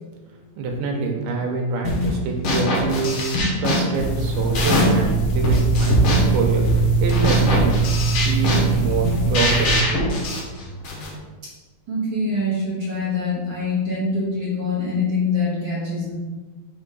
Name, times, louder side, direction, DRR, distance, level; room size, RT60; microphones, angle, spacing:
voice 1, 0.5-3.2 3.6-7.8 8.0-10.0, right 4 dB, 80° right, 1 dB, 2.7 m, -26 dB
sound 1, 1.8-2.2 2.4-5.1 5.4-11.1, left 1 dB, 65° left, 1.5 m, -22 dB
sound 2, 4.0-9.8, right 4 dB, 85° left, 2.6 m, -21 dB
voice 2, 11.9-16.1, left 3 dB, 60° right, -8 dB, 1.1 m, -24 dB
6.1 x 3.5 x 5.5 m, 1.3 s
omnidirectional pair, 4.5 m